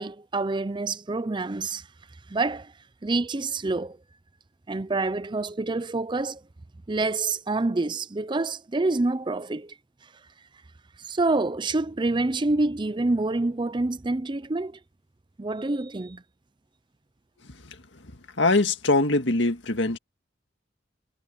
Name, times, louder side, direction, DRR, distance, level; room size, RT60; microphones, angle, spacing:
voice 1, 0.0-1.9 2.3-2.7 3.0-4.0 4.7-6.4 6.9-9.7 11.0-14.8 15.4-16.2, right 2 dB, 25° right, 0.5 m, -27 dB
voice 2, 18.4-20.0, left 2 dB, 70° left, 2.0 m, -22 dB
head